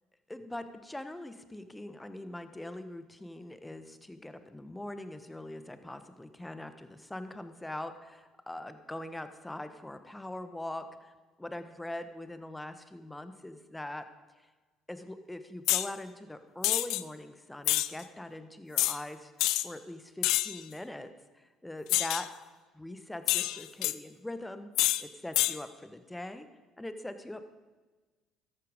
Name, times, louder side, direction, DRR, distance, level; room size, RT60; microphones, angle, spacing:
voice 1, 0.3-14.0 14.9-21.1 21.3-22.3 22.7-26.5 26.8-27.4, left 1 dB, 10° left, 10 dB, 1.3 m, -42 dB
sound 1, 15.7-15.9 16.6-17.0 17.6-17.9 18.8-19.0 19.4-19.7 20.2-20.6 21.9-22.3 23.3-23.9 24.8-25.0 25.3-25.6, left 16 dB, 70° left, 0.4 m, -27 dB
13.0 x 11.5 x 5.1 m, 1.3 s
hypercardioid pair, 60°, 0 cm